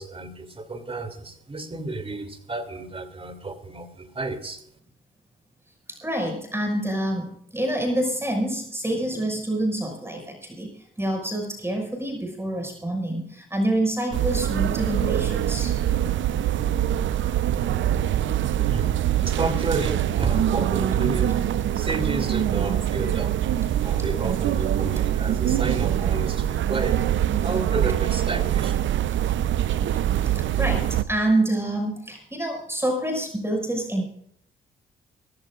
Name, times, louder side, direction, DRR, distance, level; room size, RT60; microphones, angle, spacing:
voice 1, 0.0-4.6 18.2-18.3 18.7-19.0 19.3-21.4 21.7-23.5 23.8-27.0 27.3-28.8, right 3 dB, 30° right, 8 dB, 3.0 m, -31 dB
voice 2, 5.9-15.8 30.3-34.0, right 1 dB, 10° right, 2 dB, 6.1 m, -27 dB
sound 1, 14.1-31.0, right 11 dB, 70° right, 0.7 m, -24 dB
23.0 x 15.0 x 2.5 m, 0.67 s
cardioid pair, 75°, 20 cm